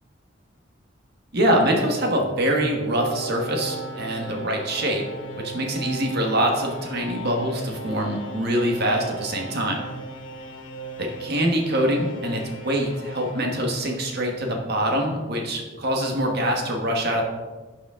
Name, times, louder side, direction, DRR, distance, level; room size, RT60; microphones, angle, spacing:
voice 1, 1.3-5.0 5.4-9.8 11.0-17.2, right 1 dB, 60° right, 1 dB, 1.4 m, -24 dB
sound 1, 1.4-14.4, right 2 dB, 80° left, 1.2 m, -37 dB
12.0 x 5.2 x 3.7 m, 1.3 s
head